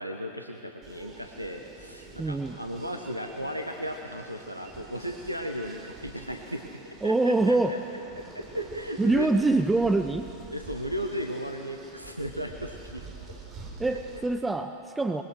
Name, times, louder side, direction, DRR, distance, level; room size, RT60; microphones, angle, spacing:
voice 1, 0.0-7.8 8.2-9.3 10.5-13.1 13.9-14.0, equal, 90° right, 4 dB, 1.3 m, -36 dB
sound 1, 0.8-14.3, right 4 dB, 30° right, 4.1 m, -47 dB
voice 2, 2.2-2.6 7.0-7.8 9.0-10.3 13.8-15.2, right 2 dB, 10° right, 8 dB, 0.8 m, -24 dB
24.0 x 21.5 x 6.3 m, 2.5 s
figure-of-eight pair, 90°, 0 cm